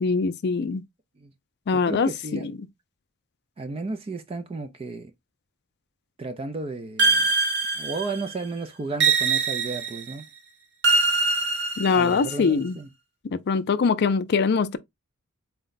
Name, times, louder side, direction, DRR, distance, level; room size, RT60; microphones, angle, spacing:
voice 1, 0.0-0.8 1.7-2.5 11.8-12.8 13.3-14.8, left 5 dB, 50° left, 0.4 m, -23 dB
voice 2, 1.7-2.5 3.6-5.1 6.2-7.3 7.7-10.3 11.9-12.9, right 3 dB, 25° right, 0.4 m, -33 dB
sound 1, 7.0-8.3 9.0-10.1 10.8-12.4, right 4 dB, 55° right, 0.7 m, -23 dB
4.2 x 2.1 x 3.8 m
head